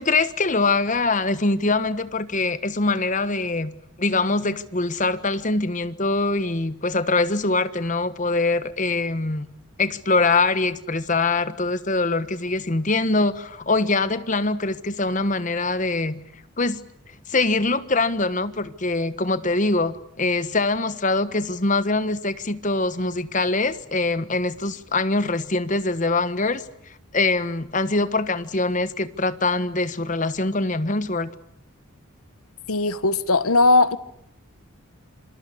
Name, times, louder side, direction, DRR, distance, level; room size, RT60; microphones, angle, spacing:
voice 1, 0.0-3.7 4.0-9.5 9.8-16.2 16.6-16.8 17.3-26.6 27.1-31.3, left 3 dB, 35° left, 1.3 m, -23 dB
voice 2, 32.7-34.0, left 2 dB, 90° left, 1.4 m, -18 dB
27.0 x 26.0 x 8.5 m
head